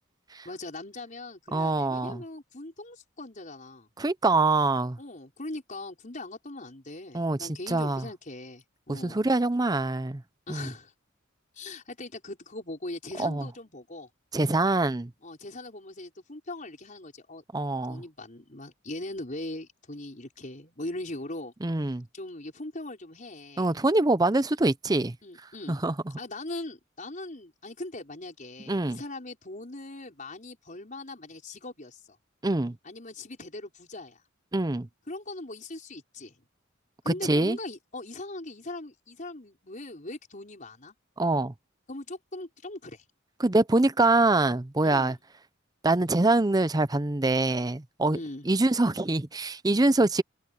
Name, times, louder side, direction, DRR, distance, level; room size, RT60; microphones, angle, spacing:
voice 1, 0.4-3.9 5.0-9.2 10.5-10.9 11.5-14.1 15.2-17.4 17.9-21.5 21.8-23.7 25.2-25.8 26.2-32.2 32.8-34.2 35.1-36.4 37.0-40.9 41.9-43.0 44.8-45.2 48.1-48.5 50.0-50.1, left 2 dB, 40° left, 5.6 m, -40 dB
voice 2, 1.5-2.2 4.0-5.0 7.1-8.0 8.9-10.2 10.5-10.7 13.2-13.5 14.3-15.1 17.5-18.0 21.6-22.0 23.6-25.2 25.7-25.9 28.7-29.0 32.4-32.8 34.5-34.9 37.1-37.6 41.2-41.5 43.4-45.2 45.8-48.2 48.5-50.2, right 2 dB, 20° right, 0.6 m, -24 dB
head